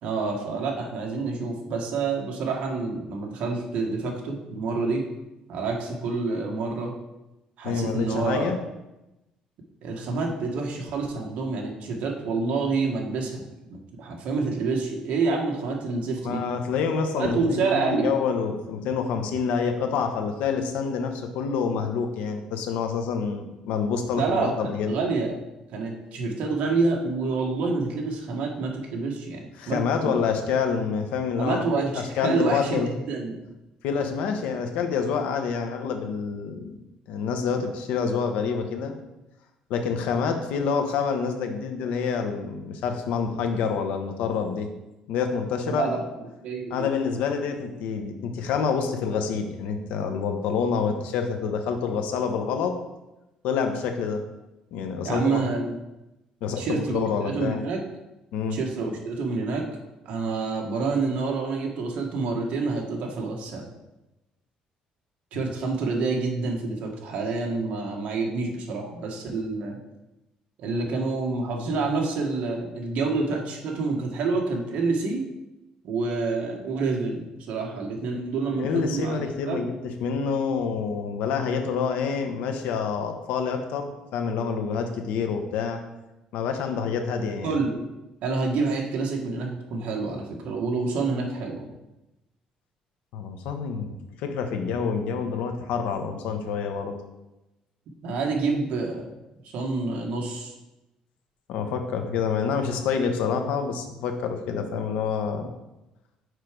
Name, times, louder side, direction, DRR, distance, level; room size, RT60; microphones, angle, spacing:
voice 1, 0.0-5.0 5.5-6.9 7.6-8.6 9.8-13.4 13.7-16.4 17.2-18.2 24.2-24.5 24.9-25.4 25.7-30.2 31.4-32.8 33.1-33.4 45.7-46.9 55.0-55.7 56.6-57.8 58.5-59.7 60.0-63.7 65.3-69.8 70.6-75.2 75.8-79.2 79.5-79.7 87.4-87.8 88.2-91.7 98.0-99.1 99.5-100.5, right 4 dB, 65° right, 0 dB, 1.5 m, -28 dB
voice 2, 7.6-8.6 16.2-24.9 29.6-32.9 33.8-36.7 37.1-38.9 39.7-44.7 45.1-46.0 46.7-52.7 53.4-54.2 54.7-55.4 56.4-57.6 58.3-58.6 78.5-85.8 86.3-87.6 93.1-97.0 101.5-105.5, left 6 dB, 80° left, 6 dB, 1.0 m, -27 dB
6.5 x 4.7 x 5.1 m, 0.97 s
cardioid pair, 155°, 2 cm